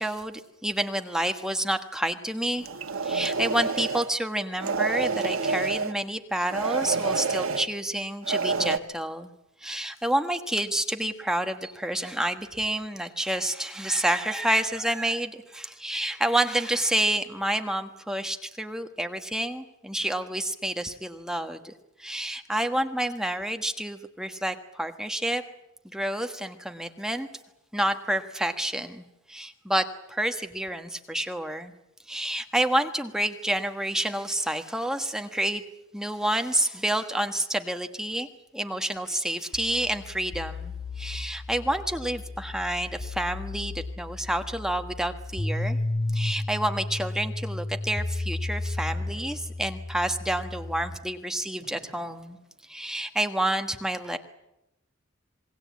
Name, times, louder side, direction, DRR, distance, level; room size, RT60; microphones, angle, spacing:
voice 1, 0.0-2.6 3.0-9.3 9.6-21.7 22.0-25.4 25.8-27.3 27.7-31.7 32.1-35.6 35.9-38.3 38.5-45.8 46.1-52.4 52.6-54.2, right 1 dB, 5° right, 6 dB, 1.4 m, -29 dB
sound 1, 2.6-4.1 4.6-5.9 6.5-7.7 8.2-8.8, right 4 dB, 85° right, 1.3 m, -28 dB
sound 2, 39.5-51.0, left 2 dB, 40° left, 2.4 m, -33 dB
Fireworks, 48.9-50.2 51.6-53.2, right 1 dB, 40° right, 4.6 m, -54 dB
27.5 x 20.5 x 8.4 m, 0.88 s
head